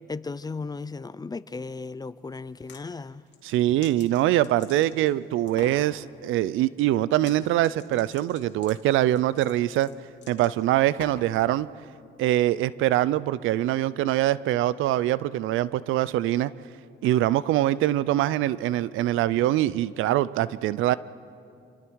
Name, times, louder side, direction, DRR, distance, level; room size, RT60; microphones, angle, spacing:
voice 1, 0.1-3.2, left 4 dB, 20° left, 0.5 m, -35 dB
sound 1, 2.4-2.8 3.3-5.1 5.5-5.9 7.1-7.4 7.6-11.4, left 7 dB, 65° left, 2.7 m, -46 dB
voice 2, 3.4-9.9 10.3-11.7 12.2-16.5 17.0-20.9, right 14 dB, 90° right, 0.5 m, -23 dB
27.0 x 27.0 x 4.7 m
cardioid pair, 90°, 20 cm